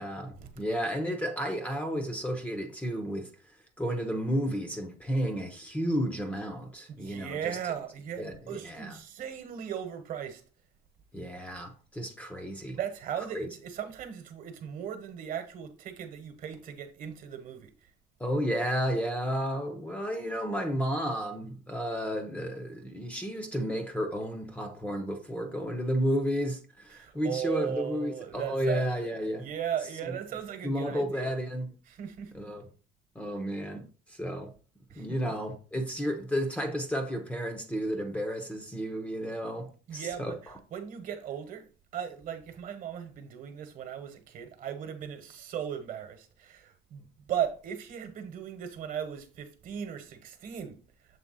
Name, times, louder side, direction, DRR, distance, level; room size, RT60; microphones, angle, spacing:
voice 1, 0.0-3.3 3.8-7.6 8.2-9.0 11.1-12.8 13.3-13.5 18.2-29.5 30.1-30.2 30.6-31.7 32.3-32.7 33.1-34.5 35.0-40.6, equal, 10° left, 0.7 m, -32 dB
voice 2, 6.9-10.4 12.7-17.7 26.9-28.8 29.4-31.3 31.9-32.3 34.9-35.3 39.9-41.7 41.9-50.8, right 9 dB, 50° right, 1.1 m, -37 dB
7.2 x 3.4 x 4.0 m
cardioid pair, 150°, 18 cm